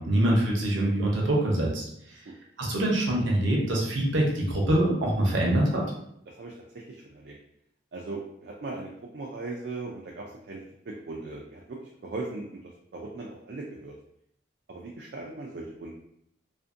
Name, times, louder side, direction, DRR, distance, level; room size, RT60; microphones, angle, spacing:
voice 1, 0.0-1.8 2.6-5.8, right 1 dB, 90° right, -2 dB, 0.7 m, -24 dB
voice 2, 6.3-7.4 7.9-12.6 12.9-13.9 14.7-16.0, right 3 dB, 60° right, -2 dB, 0.4 m, -39 dB
2.5 x 2.5 x 2.5 m, 0.74 s
head